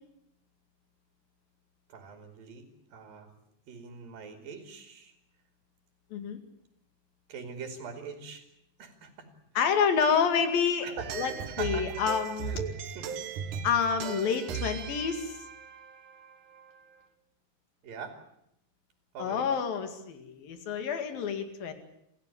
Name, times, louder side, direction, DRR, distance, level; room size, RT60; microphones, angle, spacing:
voice 1, 1.9-3.3 3.7-5.1 7.3-8.4 8.8-9.3 10.8-11.9 12.4-13.2 17.8-18.2 19.1-19.5, right 6 dB, 85° right, 5 dB, 4.3 m, -42 dB
voice 2, 9.6-10.9 11.2-11.3 11.6-12.5 13.6-15.4 19.2-21.7, left 6 dB, 90° left, 8 dB, 4.0 m, -28 dB
sound 1, 11.0-16.8, right 6 dB, 70° right, 2.9 m, -38 dB
28.0 x 15.5 x 9.9 m, 0.77 s
omnidirectional pair, 4.0 m